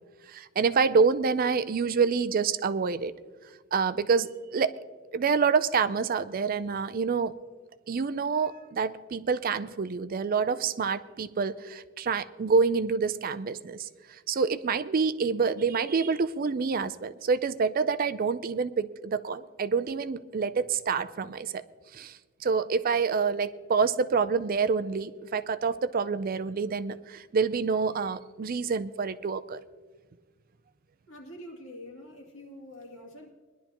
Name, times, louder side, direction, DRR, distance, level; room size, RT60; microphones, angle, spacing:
voice 1, 0.3-3.1 3.7-4.7 5.1-7.4 7.9-21.6 21.9-29.6, right 5 dB, 45° right, 13 dB, 0.4 m, -27 dB
voice 2, 31.1-33.3, left 1 dB, 80° left, 0 dB, 2.5 m, -45 dB
20.5 x 11.5 x 2.9 m, 1.4 s
head